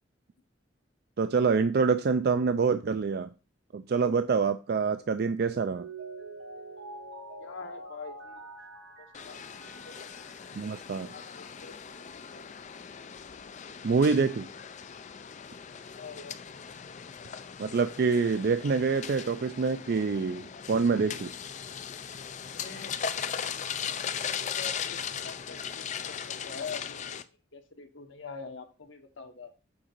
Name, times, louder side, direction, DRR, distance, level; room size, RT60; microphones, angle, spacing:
voice 1, 1.2-3.3 3.7-5.9 10.5-11.1 13.8-14.5 17.6-21.3, right 5 dB, 55° right, 0.4 m, -26 dB
Mallet percussion, 5.5-10.4, right 2 dB, 85° right, 3.2 m, -45 dB
voice 2, 7.4-8.5 9.0-10.1 10.4-10.6 11.1-12.6 15.9-16.9 22.5-27.2 27.5-29.5, left 5 dB, 90° left, 1.3 m, -45 dB
sound 1, 9.1-27.2, left 7 dB, 40° left, 0.4 m, -38 dB
7.4 x 4.8 x 4.5 m
head